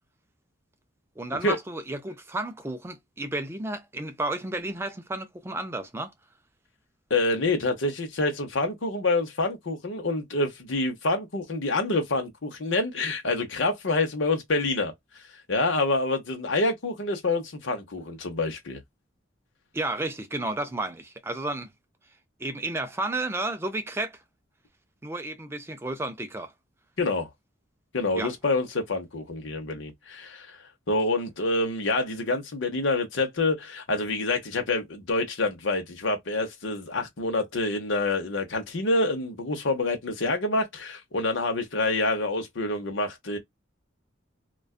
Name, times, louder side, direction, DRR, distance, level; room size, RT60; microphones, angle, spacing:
voice 1, 1.2-6.1 19.7-21.7 22.4-24.2 25.0-26.5 28.2-28.3, right 2 dB, 15° right, 0.4 m, -32 dB
voice 2, 7.1-14.9 15.5-18.8 27.0-27.3 27.9-30.6 30.9-43.4, left 2 dB, 75° left, 0.8 m, -27 dB
2.4 x 2.2 x 2.3 m
head